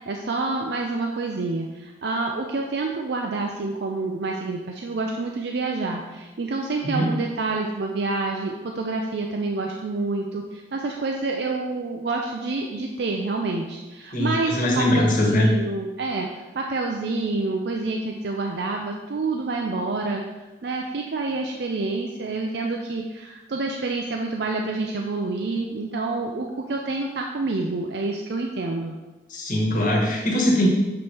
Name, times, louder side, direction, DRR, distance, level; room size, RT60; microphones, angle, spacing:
voice 1, 0.1-16.3 16.5-20.2 20.6-28.9, right 3 dB, 60° right, 1 dB, 0.4 m, -28 dB
voice 2, 14.1-15.5 29.3-30.7, left 1 dB, 45° left, -2 dB, 1.3 m, -21 dB
7.1 x 3.2 x 4.3 m, 1.1 s
head